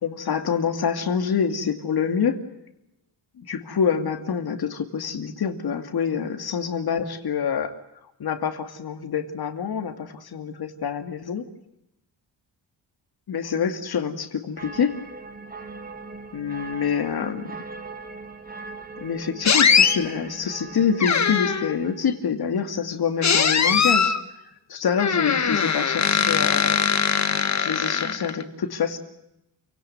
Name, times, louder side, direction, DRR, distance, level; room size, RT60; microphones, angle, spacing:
voice 1, 0.0-2.4 3.4-7.7 8.2-11.5 13.3-15.0 16.3-17.6 19.0-24.2 24.7-26.9 27.6-29.0, left 7 dB, 55° left, 7 dB, 2.5 m, -26 dB
sound 1, 14.6-22.2, right 3 dB, 20° right, 2.1 m, -40 dB
sound 2, 19.5-20.0 21.0-21.8 23.2-24.2 25.0-28.4, left 6 dB, 40° left, 1.7 m, -21 dB
28.5 x 18.0 x 9.4 m, 0.84 s
wide cardioid pair, 140°, 44 cm